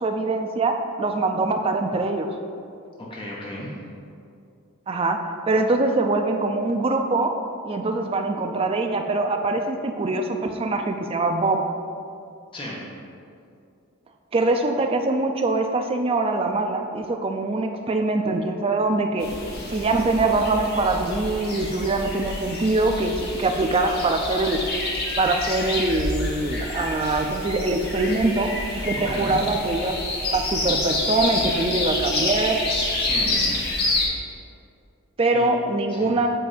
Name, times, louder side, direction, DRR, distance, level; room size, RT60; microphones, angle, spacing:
voice 1, 0.0-2.4 4.9-7.3 7.6-11.7 14.3-19.3 19.7-24.6 25.2-29.9 30.3-32.6 35.2-36.3, right 2 dB, 25° right, 4 dB, 0.3 m, -23 dB
voice 2, 3.0-3.7 12.5-12.8 29.0-29.4 33.0-33.6 35.3-35.5 35.9-36.2, left 1 dB, 25° left, -5 dB, 0.9 m, -34 dB
sound 1, 19.2-34.1, left 2 dB, 45° left, 1.0 m, -28 dB
7.6 x 2.6 x 5.0 m, 2.5 s
head